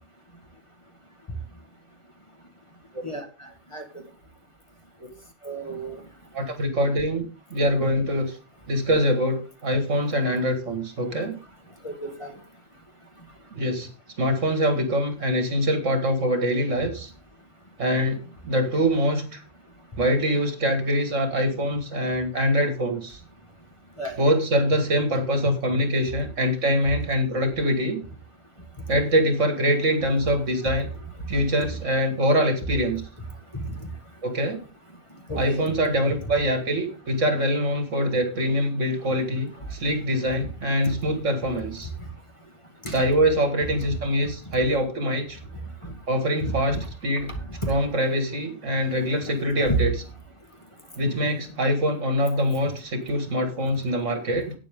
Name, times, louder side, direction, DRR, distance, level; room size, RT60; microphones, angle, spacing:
voice 1, 5.4-6.0 11.8-12.3 24.0-24.2 33.5-33.8 35.3-35.7 42.8-43.0 46.4-46.8 49.7-49.8, right 2 dB, 25° left, 4 dB, 1.8 m, -30 dB
voice 2, 6.3-8.4 8.7-11.3 13.5-13.9 14.2-17.1 17.8-19.4 20.0-23.2 24.2-28.0 28.9-30.9 31.3-33.0 34.2-34.6 35.4-41.9 42.9-45.4 46.1-47.3 47.7-49.9 51.0-54.5, equal, 70° right, 6 dB, 2.4 m, -24 dB
11.5 x 9.1 x 3.7 m, 0.33 s
omnidirectional pair, 1.3 m